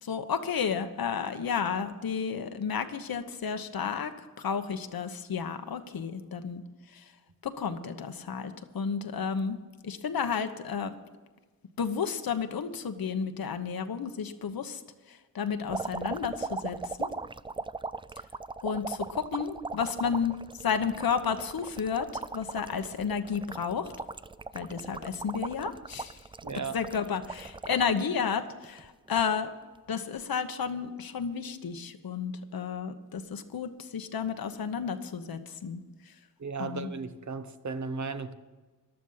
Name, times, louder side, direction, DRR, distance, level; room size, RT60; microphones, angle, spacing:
voice 1, 0.0-6.6 6.9-7.0 7.4-9.6 9.8-10.9 11.8-14.8 15.1-17.1 18.6-23.9 24.5-26.2 26.7-29.5 29.9-35.8 36.6-36.9, left 6 dB, 80° left, 1.1 m, -32 dB
sound 1, 15.7-28.0 28.5-29.2 30.2-30.4, right 3 dB, 15° right, 0.3 m, -38 dB
voice 2, 26.4-26.8 36.4-38.3, right 4 dB, 55° right, 1.0 m, -35 dB
14.0 x 11.5 x 5.7 m
cardioid pair, 65°, 35 cm